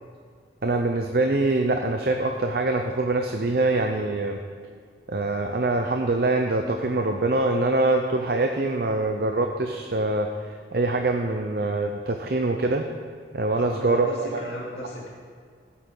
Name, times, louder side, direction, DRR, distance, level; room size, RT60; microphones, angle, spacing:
voice 1, 0.6-4.4 5.1-12.8 13.3-14.4, right 2 dB, 55° right, 4 dB, 0.6 m, -24 dB
voice 2, 13.5-15.1, left 1 dB, 65° left, -5 dB, 3.1 m, -35 dB
16.0 x 8.3 x 3.9 m, 2.1 s
head